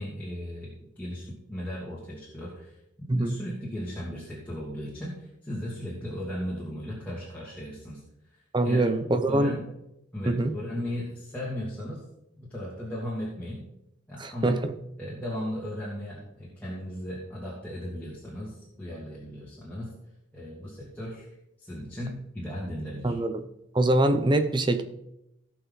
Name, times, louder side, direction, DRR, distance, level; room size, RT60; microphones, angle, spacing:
voice 1, 0.0-8.4 8.6-8.9 9.3-9.7 10.1-12.0 12.4-13.7 14.1-14.6 15.0-19.9 20.3-21.3 21.6-23.2, equal, 10° left, -7 dB, 2.6 m, -36 dB
voice 2, 3.1-3.4 8.5-9.5 10.3-10.6 14.2-14.7 23.0-23.4 23.7-24.8, right 1 dB, 25° right, 8 dB, 0.7 m, -24 dB
17.5 x 5.9 x 4.1 m, 0.84 s
head